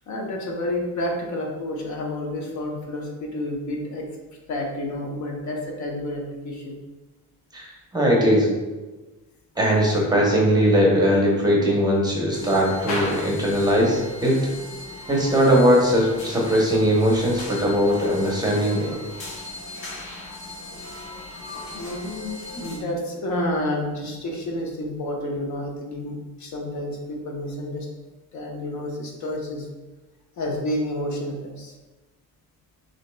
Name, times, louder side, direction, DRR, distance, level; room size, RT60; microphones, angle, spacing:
voice 1, 0.1-4.1 4.5-6.8 21.7-27.9 28.3-29.7 30.4-31.7, left 1 dB, 55° left, 0 dB, 0.8 m, -30 dB
voice 2, 7.5-8.5 9.6-14.5 15.1-19.0, equal, 10° right, -2 dB, 0.7 m, -20 dB
sound 1, 12.3-22.8, left 2 dB, 85° left, 1.0 m, -37 dB
6.2 x 2.8 x 2.2 m, 1.2 s
cardioid pair, 140°, 34 cm